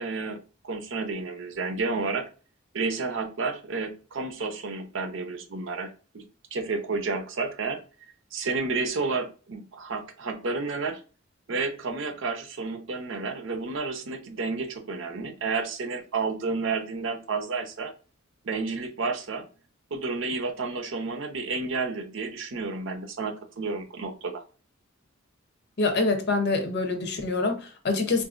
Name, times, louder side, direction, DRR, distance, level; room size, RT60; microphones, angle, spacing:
voice 1, 0.0-2.3 2.7-6.2 6.5-7.8 8.3-11.0 11.5-17.9 18.4-19.5 19.9-24.4, right 4 dB, 65° right, 0.6 m, -31 dB
voice 2, 25.8-28.2, left 3 dB, 55° left, 0.7 m, -25 dB
3.8 x 2.6 x 2.4 m
head